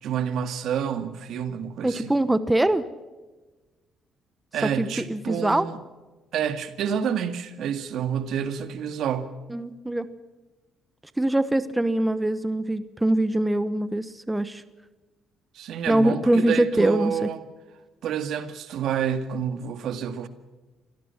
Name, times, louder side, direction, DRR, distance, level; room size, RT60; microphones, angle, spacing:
voice 1, 0.0-2.1 4.5-5.8 6.3-9.3 15.5-17.4 18.0-20.3, right 8 dB, 70° right, 2.0 m, -29 dB
voice 2, 1.8-2.8 4.6-5.7 9.5-10.1 11.2-14.6 15.9-17.3, right 1 dB, 10° right, 1.1 m, -23 dB
26.0 x 18.0 x 5.9 m
cardioid pair, 110°, 0 cm